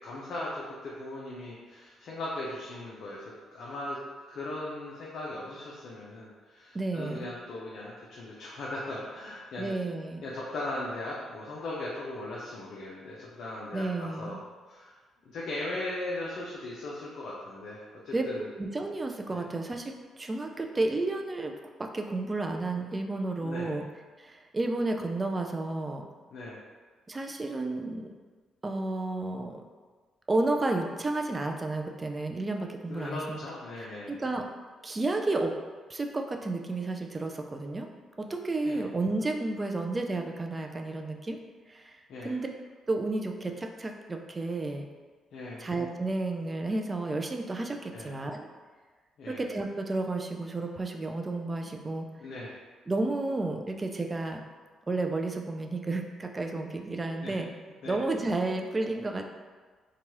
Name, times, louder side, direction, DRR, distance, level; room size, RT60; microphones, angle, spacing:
voice 1, 0.0-4.0 4.3-9.7 10.2-14.4 14.7-15.0 15.3-18.5 19.3-19.5 23.4-23.7 26.3-26.6 32.9-34.1 38.6-38.8 42.1-42.4 45.3-45.7 47.9-48.1 49.2-49.4 52.2-52.5 57.2-57.3 57.8-58.0, left 2 dB, 65° left, -5 dB, 0.5 m, -38 dB
voice 2, 6.7-7.3 9.6-10.2 13.7-14.4 18.1-18.2 18.6-23.8 24.2-26.1 27.1-28.1 28.6-29.6 30.3-33.4 33.8-34.4 34.8-35.6 35.9-37.9 38.2-41.4 41.7-42.5 42.9-44.9 45.6-48.5 49.3-52.1 52.9-54.4 54.9-57.5 57.9-59.2, right 2 dB, 25° right, 3 dB, 0.3 m, -32 dB
2.9 x 2.3 x 3.0 m, 1.4 s
cardioid pair, 90°, 0 cm